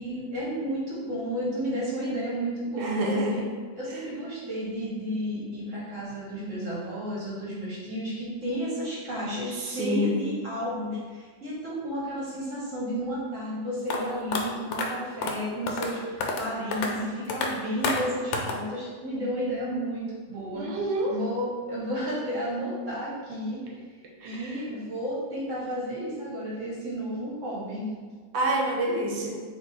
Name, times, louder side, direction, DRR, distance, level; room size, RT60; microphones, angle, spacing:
voice 1, 0.0-3.4 3.7-20.0 20.3-23.6 24.2-27.9, equal, 50° right, -7 dB, 1.1 m, -32 dB
voice 2, 2.8-3.4 9.7-10.2 20.5-21.1 24.2-24.6 28.3-29.4, right 1 dB, 85° right, -2 dB, 1.5 m, -27 dB
sound 1, 13.9-14.0 14.3-14.4 14.7-14.9 15.2-15.4 15.7-15.9 16.2-16.5 16.7-16.9 17.3-17.5 17.8-18.0 18.3-18.6, left 4 dB, 80° left, 1.3 m, -28 dB
3.7 x 2.8 x 4.1 m, 1.5 s
omnidirectional pair, 2.1 m